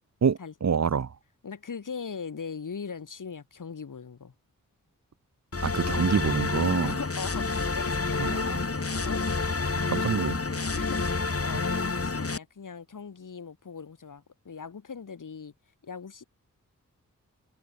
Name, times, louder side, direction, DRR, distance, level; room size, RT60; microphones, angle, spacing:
voice 1, 0.2-1.1 5.6-7.0 8.2-8.3 9.9-10.4, right 6 dB, 50° right, 1.0 m, -26 dB
voice 2, 1.4-4.3 6.8-9.5 10.7-15.5 15.8-16.2, left 6 dB, 65° left, 3.4 m, -40 dB
sound 1, 5.5-12.4, left 4 dB, 45° left, 3.6 m, -29 dB
cardioid pair, 45°, 33 cm